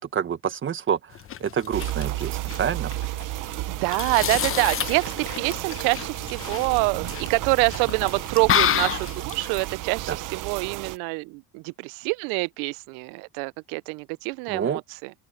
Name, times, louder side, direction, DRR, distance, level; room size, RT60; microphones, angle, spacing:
voice 1, 0.1-1.1 1.4-2.9 10.1-10.2 14.5-14.8, right 8 dB, 35° right, 1.7 m, -27 dB
sound 1, 1.1-9.7, left 10 dB, 35° left, 1.0 m, -30 dB
sound 2, 1.7-11.0, right 17 dB, 60° right, 1.0 m, -33 dB
voice 2, 3.7-15.1, right 28 dB, 85° right, 0.6 m, -26 dB
open air
cardioid pair, 115°, 36 cm